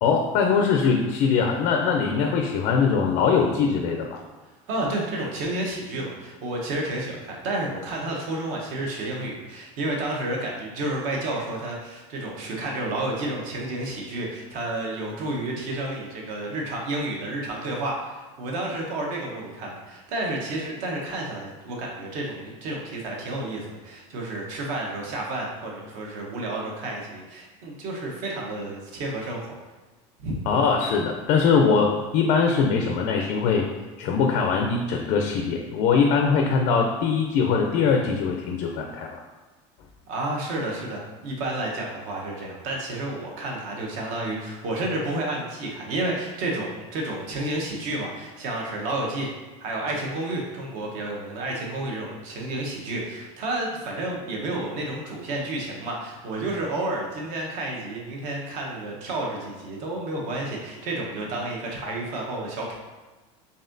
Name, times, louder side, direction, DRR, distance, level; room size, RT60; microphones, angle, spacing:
voice 1, 0.0-4.2 30.5-33.7 34.0-39.2, left 5 dB, 55° left, 2 dB, 0.4 m, -22 dB
voice 2, 4.7-29.6 30.2-30.4 40.1-49.3 49.6-62.7, right 2 dB, 55° right, -1 dB, 0.9 m, -31 dB
4.1 x 3.5 x 2.6 m, 1.2 s
cardioid pair, 160°, 16 cm